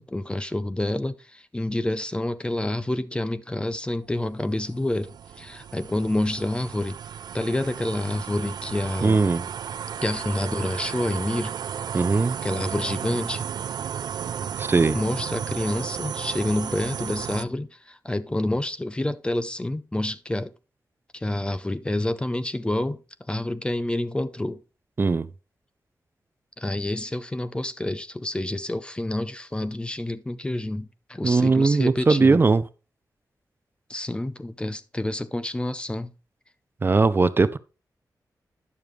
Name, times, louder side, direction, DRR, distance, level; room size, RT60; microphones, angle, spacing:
voice 1, 0.0-7.0 7.3-9.2 10.0-11.5 12.4-13.4 14.9-20.5 21.1-23.0 23.3-24.6 26.6-32.4 33.9-36.1, left 1 dB, 15° left, 0.5 m, -28 dB
sound 1, 4.0-17.4, right 8 dB, 90° right, 0.3 m, -34 dB
voice 2, 9.0-9.4 11.9-12.4 14.6-15.0 25.0-25.3 31.2-32.6 36.8-37.6, right 4 dB, 30° right, 0.5 m, -19 dB
10.5 x 6.9 x 3.2 m
wide cardioid pair, 140°, 7 cm